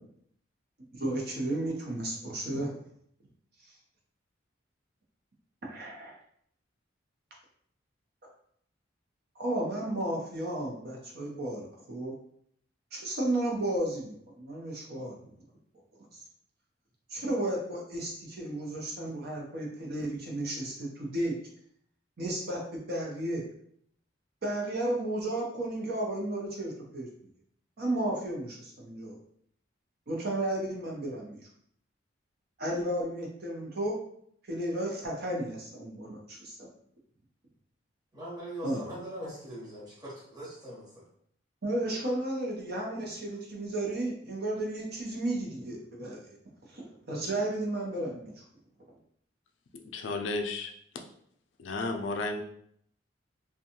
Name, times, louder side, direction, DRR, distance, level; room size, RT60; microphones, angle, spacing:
voice 1, 0.9-2.7 5.6-6.2 9.4-12.1 12.9-15.2 16.1-16.2 17.1-21.3 22.2-23.4 24.4-27.1 27.8-29.2 30.1-31.5 32.6-34.0 34.5-36.7 38.6-38.9 41.6-46.2 46.7-48.4, right 1 dB, 55° right, -1 dB, 0.6 m, -33 dB
voice 2, 38.1-41.0, right 1 dB, 20° right, -9 dB, 1.0 m, -41 dB
voice 3, 49.7-50.7 51.6-52.4, left 3 dB, 70° left, 4 dB, 0.4 m, -33 dB
2.6 x 2.2 x 2.8 m, 0.67 s
head